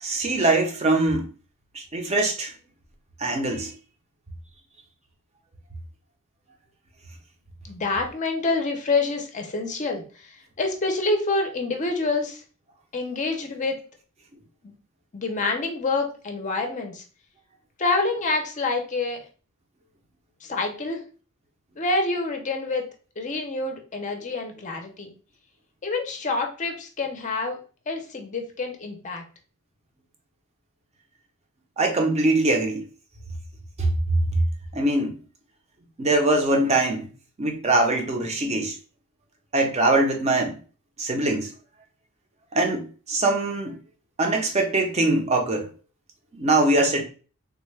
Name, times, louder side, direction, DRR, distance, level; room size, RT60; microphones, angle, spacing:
voice 1, 0.0-1.3 1.7-2.5 3.2-3.7 31.8-32.8 33.8-34.2 34.7-35.1 36.0-37.1 37.4-38.7 39.5-40.6 41.0-41.5 42.5-43.7 44.2-45.7 46.3-47.0, right 2 dB, 30° right, 3 dB, 0.6 m, -22 dB
voice 2, 7.6-10.3 10.6-12.4 12.9-13.8 14.6-14.7 15.1-17.0 17.8-19.2 20.4-21.0 21.8-22.8 23.2-25.1 25.8-27.6 27.9-29.2, left 3 dB, 35° left, 3 dB, 0.5 m, -27 dB
3.5 x 2.1 x 3.1 m, 0.37 s
head